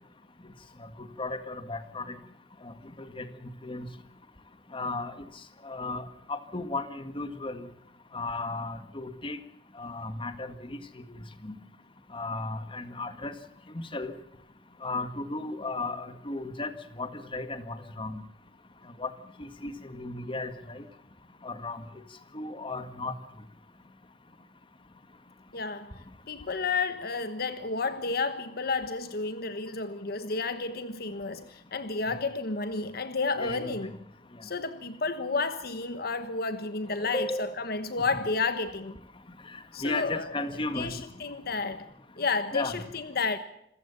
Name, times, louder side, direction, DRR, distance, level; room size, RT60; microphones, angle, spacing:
voice 1, 1.2-2.2 2.6-3.3 3.6-3.9 4.7-5.1 5.6-7.7 8.1-9.4 9.8-10.8 11.4-11.5 12.1-13.3 13.7-14.1 14.8-16.7 17.0-18.2 19.0-19.1 19.4-20.8 21.4-21.8 22.3-23.1 33.4-33.8 37.1-37.5 39.8-40.9 42.5-42.8, left 2 dB, 30° left, 1.8 m, -35 dB
voice 2, 25.5-25.9 26.3-33.9 34.4-38.9 39.7-40.3 40.7-41.9 42.2-43.4, left 4 dB, 60° left, 1.3 m, -31 dB
27.0 x 15.0 x 7.1 m
head